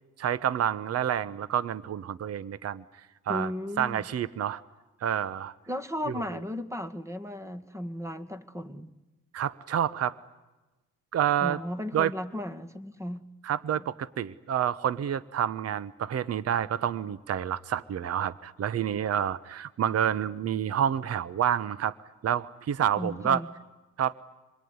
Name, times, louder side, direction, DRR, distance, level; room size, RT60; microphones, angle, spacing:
voice 1, 0.2-2.8 3.3-3.5 3.8-4.6 5.0-5.5 6.1-6.2 9.3-10.2 11.1-11.6 11.9-12.1 13.4-21.9 22.2-23.4 24.0-24.1, right 9 dB, 55° right, 1.0 m, -28 dB
voice 2, 3.3-4.1 5.7-8.9 11.4-13.2 22.9-23.5, left 1 dB, 10° right, 1.9 m, -35 dB
27.0 x 22.5 x 9.6 m
cardioid pair, 90°, 30 cm